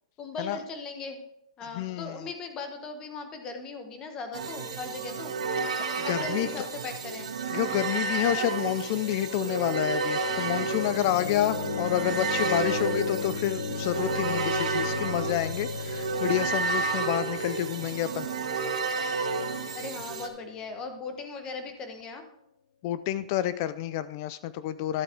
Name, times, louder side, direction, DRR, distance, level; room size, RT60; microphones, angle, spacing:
voice 1, 0.2-1.2 1.6-5.3 6.0-7.3 19.7-22.2, left 4 dB, 20° left, 6 dB, 1.2 m, -38 dB
voice 2, 1.7-2.3 6.0-6.7 7.5-18.3 22.8-25.0, left 12 dB, 35° left, 15 dB, 0.4 m, -29 dB
sound 1, 4.3-20.3, right 4 dB, 85° right, 1.6 m, -31 dB
sound 2, 8.8-20.9, left 6 dB, 55° left, 0.9 m, -36 dB
11.5 x 8.1 x 4.4 m, 0.78 s
hypercardioid pair, 165°, 3 cm